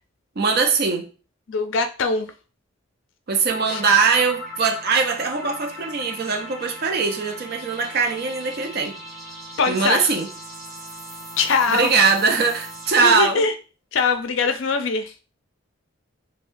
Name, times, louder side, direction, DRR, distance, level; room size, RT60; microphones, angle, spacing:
voice 1, 0.4-1.0 3.3-8.9 9.7-10.3 11.7-13.5, right 5 dB, 50° right, 0.5 m, -21 dB
voice 2, 1.5-2.3 3.7-3.8 9.6-10.1 11.4-11.9 13.0-13.5 13.9-15.1, left 4 dB, 60° left, 0.4 m, -22 dB
sound 1, 3.5-13.2, equal, ahead, 0.9 m, -38 dB
3.6 x 2.2 x 2.5 m
head